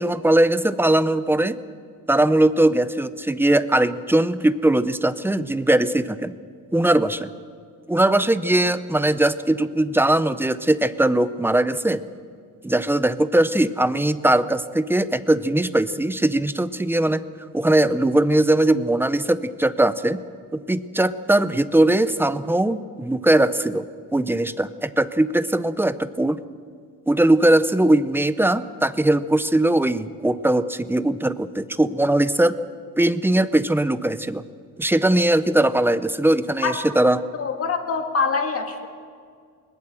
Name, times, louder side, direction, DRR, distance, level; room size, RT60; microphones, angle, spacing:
voice 1, 0.0-1.6 2.1-6.3 6.7-7.3 7.9-12.0 12.6-17.2 17.5-20.2 20.5-23.8 24.1-26.4 27.1-32.6 33.0-34.4 34.8-37.2, right 1 dB, 5° right, 13 dB, 0.5 m, -20 dB
voice 2, 37.4-38.9, left 4 dB, 40° left, 5 dB, 2.1 m, -24 dB
20.5 x 20.0 x 7.6 m, 2.2 s
cardioid pair, 160°, 35 cm